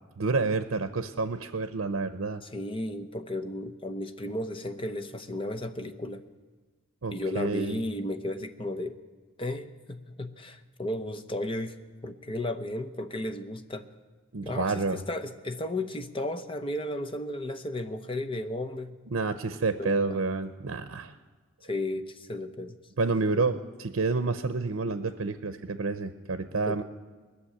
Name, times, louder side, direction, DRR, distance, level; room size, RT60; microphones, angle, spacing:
voice 1, 0.2-2.4 7.0-7.8 14.3-15.0 19.1-21.1 23.0-26.8, right 3 dB, 75° right, 10 dB, 0.7 m, -29 dB
voice 2, 2.4-6.2 7.1-9.0 9.4-13.9 14.4-18.9 19.8-20.0 21.7-22.8 26.7-26.8, left 1 dB, 25° left, 7 dB, 0.8 m, -34 dB
20.5 x 6.9 x 9.8 m, 1.4 s
head